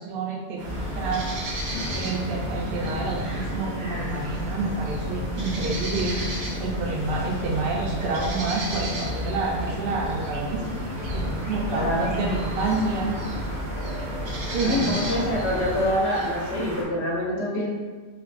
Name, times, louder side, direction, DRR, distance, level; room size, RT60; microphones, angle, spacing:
voice 1, 0.0-1.5 1.9-10.6 11.1-13.2 14.5-15.0, right 3 dB, 60° right, -1 dB, 0.7 m, -28 dB
sound 1, 0.6-15.9, equal, 5° left, 0.6 m, -32 dB
sound 2, 0.6-16.8, right 1 dB, 85° right, 1.2 m, -35 dB
voice 2, 11.7-12.1 14.6-17.7, equal, 70° left, -3 dB, 1.0 m, -26 dB
3.3 x 3.2 x 2.4 m, 1.3 s
omnidirectional pair, 1.2 m